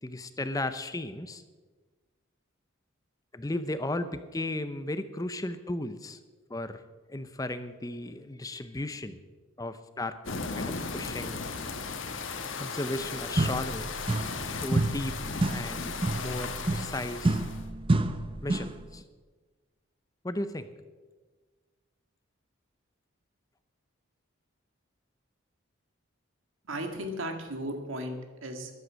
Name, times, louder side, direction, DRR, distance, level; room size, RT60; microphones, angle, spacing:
voice 1, 0.0-1.4 3.3-6.2 6.5-6.8 7.1-9.2 9.6-11.4 12.6-13.9 14.6-17.4 18.4-19.0 20.2-20.7, left 1 dB, 15° left, 11 dB, 0.6 m, -35 dB
sound 1, 10.2-17.6, left 4 dB, 70° left, 1.3 m, -36 dB
sound 2, 13.0-13.1 13.4-14.5 14.7-18.8, right 2 dB, 25° right, 0.6 m, -29 dB
voice 2, 26.7-28.7, right 1 dB, 75° right, 5 dB, 2.0 m, -35 dB
14.0 x 11.0 x 6.4 m, 1.4 s
head